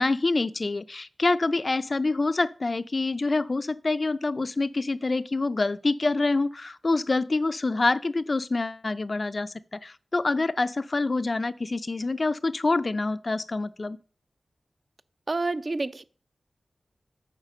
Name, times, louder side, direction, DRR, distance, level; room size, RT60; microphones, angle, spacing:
voice 1, 0.0-14.0, left 3 dB, 40° left, 0.4 m, -26 dB
voice 2, 15.3-16.0, right 3 dB, 40° right, 0.5 m, -28 dB
9.0 x 4.9 x 6.4 m
wide cardioid pair, 95°, 0 cm